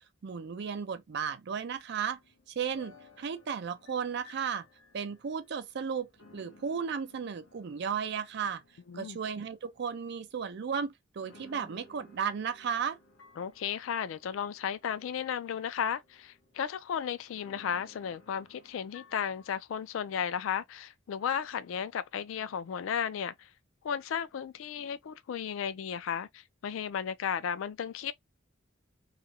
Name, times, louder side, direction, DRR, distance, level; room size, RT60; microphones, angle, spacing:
voice 1, 0.2-2.2 2.6-4.6 4.9-8.6 8.9-13.0, right 6 dB, 60° right, 0.4 m, -34 dB
sound 1, 1.9-10.7 11.2-19.5, left 3 dB, 75° left, 0.7 m, -59 dB
voice 2, 13.4-23.5 23.8-28.1, left 8 dB, 90° left, 0.3 m, -34 dB
2.4 x 2.0 x 2.7 m
head